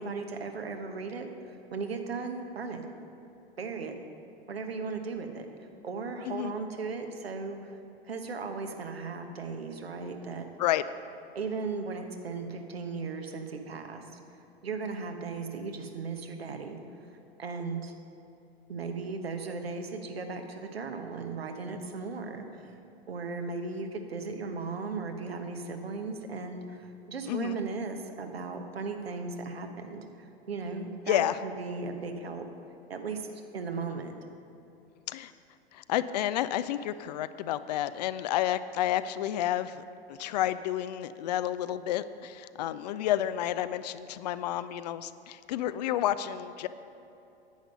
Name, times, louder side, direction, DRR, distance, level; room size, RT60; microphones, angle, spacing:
voice 1, 0.0-2.8 3.6-4.0 4.5-7.8 8.1-10.5 11.3-14.2 14.6-16.8 17.4-17.9 18.7-22.8 23.1-32.4 32.9-34.1, right 4 dB, 75° right, 5 dB, 1.1 m, -37 dB
voice 2, 31.1-31.4 35.1-35.3 35.7-46.7, left 12 dB, 45° left, 14 dB, 0.4 m, -30 dB
10.5 x 9.1 x 5.3 m, 2.8 s
figure-of-eight pair, 90°, 31 cm